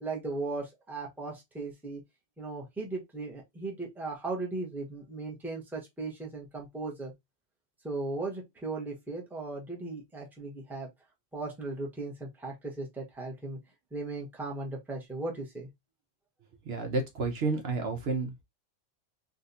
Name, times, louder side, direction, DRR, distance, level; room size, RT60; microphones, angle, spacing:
voice 1, 0.0-2.0 2.4-7.1 7.8-10.9 11.3-13.6 13.9-15.7, right 3 dB, ahead, 0.9 m, -37 dB
voice 2, 16.6-18.4, right 3 dB, 60° right, 1.0 m, -31 dB
3.7 x 2.6 x 2.6 m
omnidirectional pair, 1.2 m